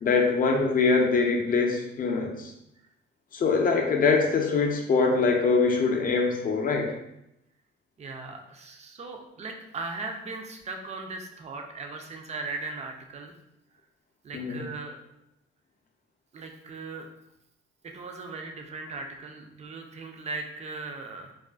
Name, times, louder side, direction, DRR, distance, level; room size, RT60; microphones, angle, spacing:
voice 1, 0.0-2.5 3.3-6.9 14.3-14.6, left 4 dB, 45° left, 3 dB, 0.4 m, -23 dB
voice 2, 8.0-13.3 14.2-15.0 16.3-17.1 17.8-21.3, right 3 dB, 35° right, 4 dB, 0.4 m, -38 dB
2.4 x 2.3 x 2.3 m, 0.83 s
cardioid pair, 90°, 20 cm